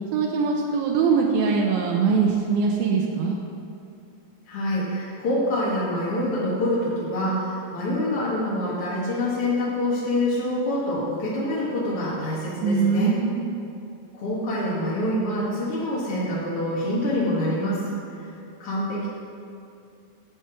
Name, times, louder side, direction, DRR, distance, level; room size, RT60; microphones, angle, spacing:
voice 1, 0.1-3.4 12.6-13.4, right 5 dB, 85° right, 0 dB, 2.1 m, -22 dB
voice 2, 4.5-13.1 14.1-17.8 18.1-18.2 18.6-19.1, left 1 dB, 60° left, -8 dB, 1.5 m, -26 dB
11.0 x 4.4 x 7.2 m, 2.6 s
omnidirectional pair, 5.0 m